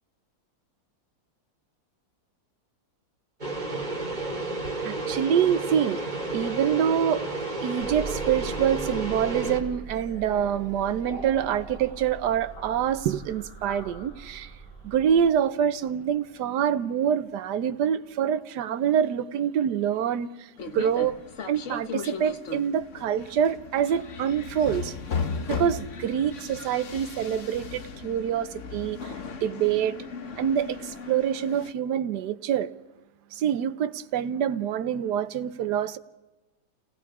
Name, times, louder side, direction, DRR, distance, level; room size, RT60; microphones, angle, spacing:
sound 1, 3.4-9.6, right 2 dB, 20° right, 2.9 m, -31 dB
voice 1, 4.8-6.0 6.3-7.2 7.6-14.5 14.8-21.2 21.4-25.0 25.5-29.1 29.4-30.0 30.4-32.7 33.3-36.0, right 9 dB, 65° right, 12 dB, 1.3 m, -26 dB
sound 2, 7.8-17.8, right 3 dB, 60° left, 7.6 m, -42 dB
sound 3, 20.6-31.7, left 5 dB, 45° left, 1.3 m, -36 dB
29.5 x 19.5 x 4.9 m, 1.1 s
omnidirectional pair, 2.1 m